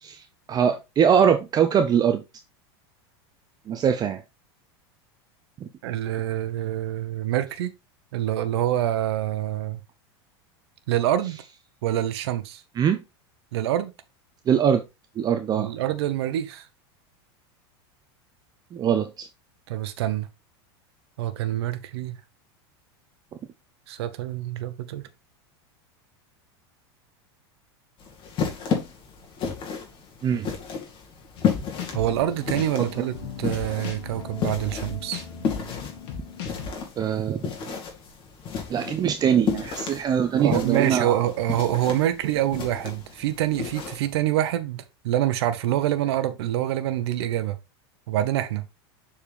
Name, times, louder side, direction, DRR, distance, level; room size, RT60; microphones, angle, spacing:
voice 1, 0.0-2.2 3.7-4.2 5.6-5.7 12.8-13.0 14.5-14.8 15.2-15.7 18.7-19.3 30.2-30.5 37.0-37.5 38.7-41.2, right 8 dB, 30° right, 0.7 m, -22 dB
voice 2, 5.8-7.7 8.1-9.8 10.9-11.4 11.8-12.6 13.5-13.9 15.5-16.7 19.7-20.3 21.2-22.2 23.9-25.0 31.9-35.2 40.3-47.6 48.1-48.6, right 12 dB, 75° right, 1.0 m, -26 dB
sound 1, 28.0-44.1, left 6 dB, 40° left, 2.3 m, -32 dB
sound 2, 31.4-36.7, left 6 dB, 60° left, 2.0 m, -37 dB
6.9 x 4.4 x 3.5 m
supercardioid pair, 115°, 14 cm